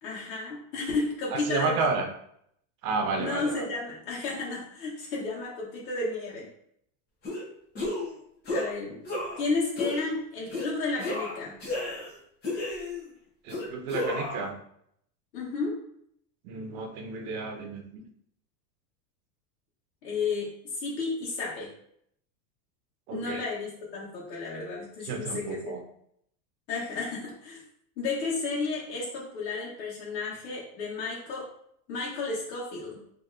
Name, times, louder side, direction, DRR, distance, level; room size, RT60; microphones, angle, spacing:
voice 1, 0.0-1.9 3.2-6.5 8.5-9.0 9.4-11.6 15.3-15.8 20.0-20.5 20.8-21.7 23.1-25.8 26.7-27.6 28.0-31.5 31.9-33.0, left 3 dB, 85° left, -5 dB, 1.1 m, -32 dB
voice 2, 1.3-2.1 2.8-3.7 13.4-14.5 16.4-18.0 23.1-23.4 25.0-25.8, right 4 dB, 60° right, 4 dB, 0.9 m, -31 dB
sound 1, 7.2-7.4 7.8-8.1 8.5-8.7 9.1-9.4 9.8-10.1 10.5-10.7 11.0-12.1 12.4-13.1 13.5-14.5, left 2 dB, 20° left, 0.8 m, -32 dB
4.1 x 2.8 x 2.5 m, 0.70 s
supercardioid pair, 155°, 49 cm